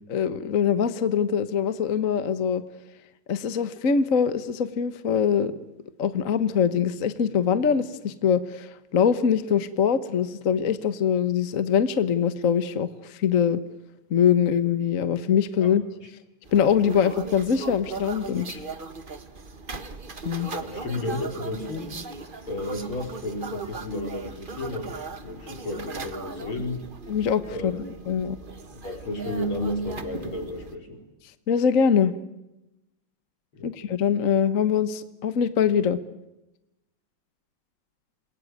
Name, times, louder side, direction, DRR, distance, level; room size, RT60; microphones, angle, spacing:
voice 1, 0.1-2.6 3.3-5.5 6.0-13.6 14.1-15.8 16.5-18.6 20.2-20.5 27.1-27.7 28.1-28.4 31.5-32.1 33.6-36.0, left 7 dB, 45° left, 12 dB, 1.4 m, -23 dB
sound 1, 16.4-30.8, right 4 dB, 30° right, 1.4 m, -38 dB
voice 2, 20.5-21.9 22.5-26.8 27.5-27.9 28.8-31.0 33.5-33.7, left 1 dB, 80° left, 3 dB, 5.4 m, -32 dB
28.0 x 22.0 x 9.5 m, 0.96 s
omnidirectional pair, 2.3 m